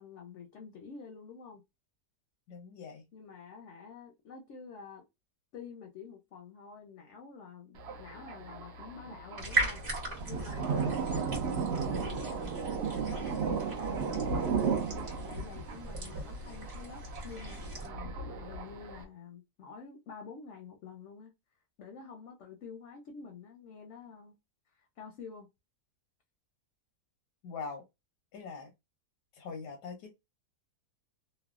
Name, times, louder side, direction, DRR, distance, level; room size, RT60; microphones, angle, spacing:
voice 1, 0.0-1.6 3.1-5.0 5.5-9.8 10.3-11.0 11.7-14.8 15.2-21.3 21.8-24.3 24.7-25.5, left 6 dB, 65° left, 0.7 m, -48 dB
voice 2, 2.5-3.1 27.4-27.8 28.3-28.7 29.3-30.1, left 5 dB, 90° left, 1.3 m, -42 dB
Thunder, 7.8-19.0, right 5 dB, 70° right, 0.6 m, -35 dB
sound 1, 9.4-17.9, right 2 dB, 40° right, 1.1 m, -38 dB
3.3 x 2.0 x 2.3 m
omnidirectional pair, 1.7 m